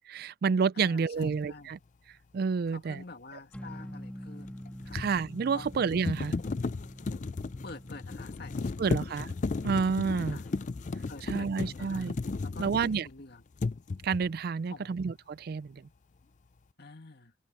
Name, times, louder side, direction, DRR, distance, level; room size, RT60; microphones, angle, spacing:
voice 1, 0.1-1.8 2.3-3.0 4.9-6.3 8.8-9.3 9.6-10.4 11.3-12.1 12.6-13.0 14.0-15.8, right 5 dB, 55° right, 0.4 m, -29 dB
voice 2, 0.7-1.8 2.7-5.1 5.5-5.7 7.6-9.2 10.1-10.5 11.1-12.1 12.4-13.4 14.7-15.0 16.8-17.3, left 3 dB, 60° left, 2.4 m, -48 dB
sound 1, 1.2-1.4 4.4-13.2 13.5-14.4, left 3 dB, 40° left, 0.5 m, -35 dB
sound 2, 3.5-10.4, equal, 10° left, 1.7 m, -47 dB
head